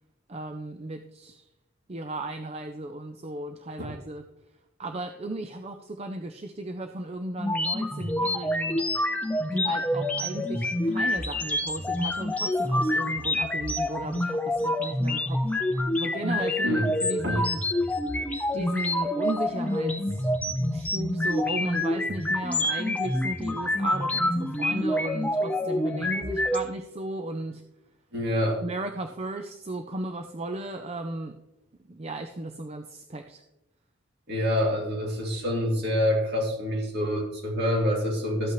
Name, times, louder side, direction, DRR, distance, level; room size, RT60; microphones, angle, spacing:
voice 1, 0.3-1.4 1.9-4.3 4.8-8.8 9.5-15.4 15.8-17.6 18.5-20.3 20.7-27.6 28.6-31.4 31.9-33.4, right 2 dB, 30° right, 7 dB, 0.5 m, -35 dB
sound 1, 7.4-26.6, left 1 dB, 5° left, 0.7 m, -27 dB
voice 2, 28.1-28.6 34.3-38.5, equal, 50° right, -1 dB, 2.7 m, -26 dB
13.5 x 8.3 x 3.1 m, 0.92 s
head